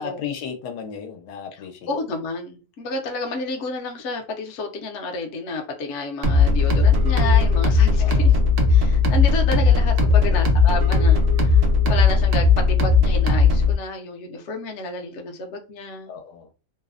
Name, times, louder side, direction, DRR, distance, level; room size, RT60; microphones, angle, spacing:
voice 1, 0.0-2.2 8.0-8.4 9.5-9.6 10.0-10.5 16.1-16.5, left 7 dB, 85° left, 1.2 m, -35 dB
voice 2, 1.9-8.3 8.7-16.1, left 3 dB, 60° left, 0.8 m, -30 dB
sound 1, 6.2-13.7, left 4 dB, 70° right, 0.5 m, -17 dB
3.1 x 2.0 x 2.3 m
omnidirectional pair, 1.7 m